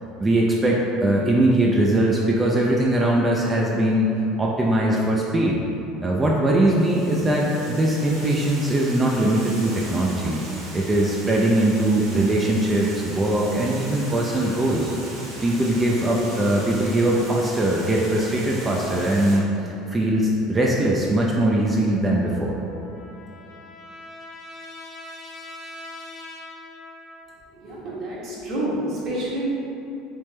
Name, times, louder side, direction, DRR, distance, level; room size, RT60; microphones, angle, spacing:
voice 1, 0.2-4.1 4.4-5.6 6.0-10.4 10.7-14.9 15.4-22.6, right 1 dB, 20° right, -3 dB, 0.4 m, -21 dB
Water, 6.8-19.4, right 1 dB, 75° right, 1.3 m, -39 dB
Trumpet, 22.3-27.5, left 2 dB, 55° left, 0.8 m, -42 dB
voice 2, 27.5-29.5, right 1 dB, 50° right, -7 dB, 1.2 m, -28 dB
3.2 x 3.1 x 3.1 m, 2.9 s
supercardioid pair, 110°, 0 cm